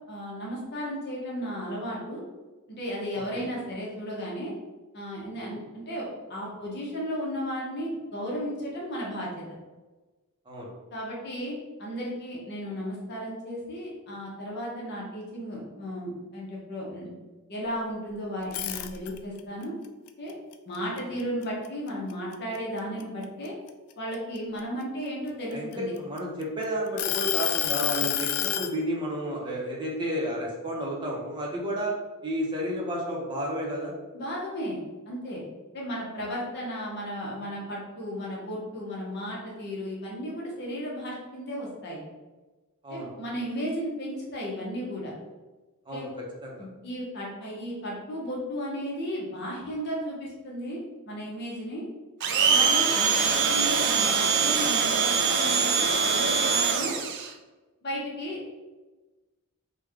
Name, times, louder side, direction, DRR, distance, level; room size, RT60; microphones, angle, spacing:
voice 1, 0.1-2.2 2.7-4.5 4.9-9.4 10.9-17.1 17.5-19.7 20.2-20.3 20.7-23.5 24.0-25.9 34.1-34.8 35.1-35.4 35.7-42.0 42.9-45.1 45.9-46.1 46.6-50.8 51.1-51.8 52.5-56.9 57.8-58.5, equal, 50° left, -4 dB, 0.8 m, -34 dB
voice 2, 3.1-3.5 5.5-5.6 10.5-10.7 25.5-25.7 26.0-31.9 32.2-33.9 42.8-43.1 45.9-46.1 46.4-46.7, equal, 20° right, -3 dB, 0.7 m, -31 dB
sound 1, 18.4-19.4 19.8-21.7 22.1-22.3 22.8-24.6 25.3-26.4 27.0-28.7, left 11 dB, 75° left, 0.3 m, -29 dB
Domestic sounds home sounds, 52.2-57.3, right 5 dB, 55° right, 0.4 m, -23 dB
3.4 x 2.2 x 3.4 m, 1.2 s
head